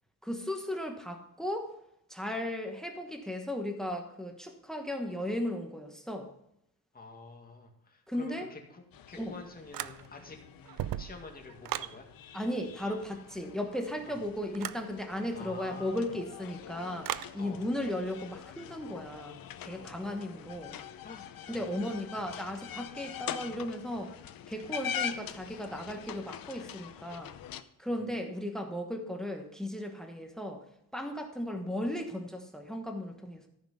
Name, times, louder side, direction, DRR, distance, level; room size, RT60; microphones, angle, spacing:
voice 1, 0.2-1.8 2.1-6.3 8.1-8.5 9.2-9.4 12.3-19.3 19.6-20.8 21.5-24.1 24.5-27.3 27.8-30.6 30.9-33.5, left 1 dB, ahead, 4 dB, 1.2 m, -36 dB
voice 2, 6.9-10.4 11.0-12.1 14.0-14.2 15.3-16.0 17.4-17.7 19.8-20.0 21.0-21.6 27.9-28.0, left 3 dB, 25° left, 2 dB, 2.1 m, -48 dB
sound 1, 8.9-27.6, left 9 dB, 85° left, 0.7 m, -44 dB
sound 2, 9.7-10.3 10.6-12.0 14.5-14.9 17.0-17.4, right 12 dB, 80° right, 0.5 m, -36 dB
14.0 x 6.0 x 5.6 m, 0.75 s
wide cardioid pair, 145°, 34 cm